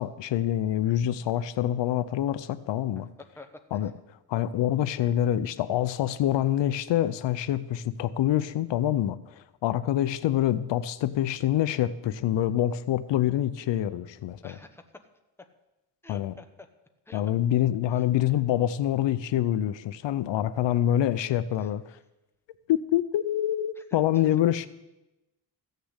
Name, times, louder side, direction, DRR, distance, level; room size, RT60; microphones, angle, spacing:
voice 1, 0.0-3.1 3.7-3.9 4.3-14.5 16.1-16.3 17.1-22.0 22.7-24.7, left 12 dB, 80° left, 14 dB, 0.7 m, -26 dB
voice 2, 3.4-3.9 14.4-14.8 16.0-16.7 17.1-17.5 17.9-18.0 21.6-21.7 23.8-24.4, left 2 dB, 5° left, 5 dB, 1.0 m, -50 dB
14.5 x 6.7 x 8.1 m, 0.97 s
cardioid pair, 140°, 43 cm